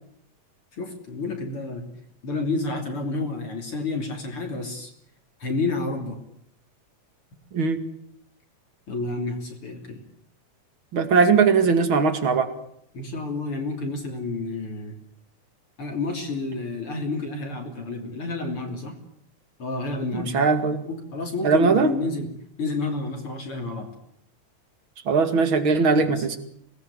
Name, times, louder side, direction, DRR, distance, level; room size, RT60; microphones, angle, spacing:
voice 1, 0.7-1.8 2.2-4.9 5.4-6.2 8.9-10.0 12.9-15.0 15.8-19.0 19.6-20.4 20.8-22.3 22.6-23.9 26.0-26.2, left 3 dB, 45° left, 3 dB, 3.9 m, -30 dB
voice 2, 10.9-12.5 20.1-20.9 21.4-21.9 25.1-26.4, right 4 dB, 45° right, 9 dB, 2.8 m, -20 dB
25.0 x 19.0 x 9.8 m, 0.72 s
omnidirectional pair, 3.5 m